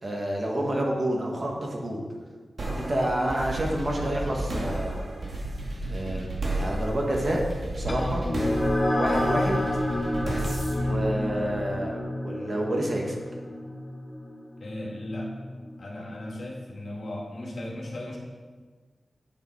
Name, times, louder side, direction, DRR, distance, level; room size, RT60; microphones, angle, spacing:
voice 1, 0.0-2.0 2.7-5.0 5.9-6.3 6.6-7.4 7.7-8.2 9.0-9.6 10.9-13.2, right 1 dB, 40° right, -1 dB, 1.7 m, -28 dB
sound 1, 2.6-12.0, right 1 dB, 60° right, 2.1 m, -33 dB
sound 2, 7.9-16.7, left 1 dB, 25° left, 1.5 m, -29 dB
voice 2, 14.6-15.4 15.8-18.2, left 1 dB, 70° left, -3 dB, 2.3 m, -36 dB
9.0 x 7.0 x 5.0 m, 1.4 s
wide cardioid pair, 115°, 0 cm